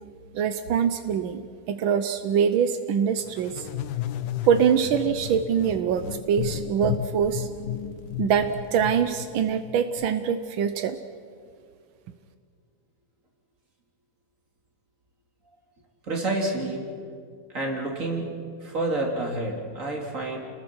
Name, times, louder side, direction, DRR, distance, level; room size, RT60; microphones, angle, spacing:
voice 1, 0.3-3.7 4.4-7.5 8.2-11.0, right 7 dB, 85° right, 9 dB, 1.6 m, -24 dB
sound 1, 3.3-10.1, left 11 dB, 80° left, 1.5 m, -34 dB
voice 2, 16.0-16.8 17.5-18.4 18.6-20.4, right 2 dB, 40° right, 0 dB, 3.6 m, -28 dB
30.0 x 20.5 x 6.2 m, 2.2 s
omnidirectional pair, 2.1 m